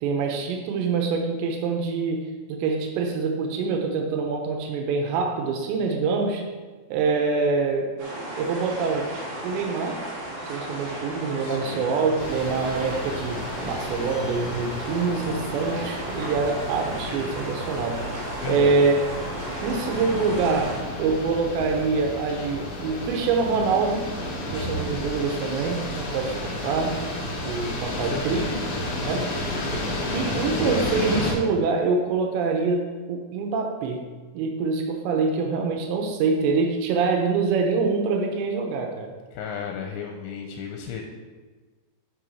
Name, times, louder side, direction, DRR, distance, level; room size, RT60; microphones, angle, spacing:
voice 1, 0.0-6.5 6.9-8.0 8.4-9.1 9.4-10.0 10.5-19.0 19.6-24.2 24.5-28.4 29.1-29.3 30.1-34.1 34.3-39.2, right 4 dB, 90° right, 3 dB, 3.0 m, -25 dB
sound 1, 8.0-20.8, right 1 dB, 55° right, 3.3 m, -35 dB
voice 2, 11.4-11.9 18.4-18.8 27.9-28.6 29.0-29.5 39.3-41.0, left 7 dB, 80° left, 2 dB, 2.7 m, -35 dB
sound 2, 12.2-31.3, left 1 dB, 65° left, 1.4 m, -32 dB
10.5 x 5.4 x 4.6 m, 1.3 s
omnidirectional pair, 5.1 m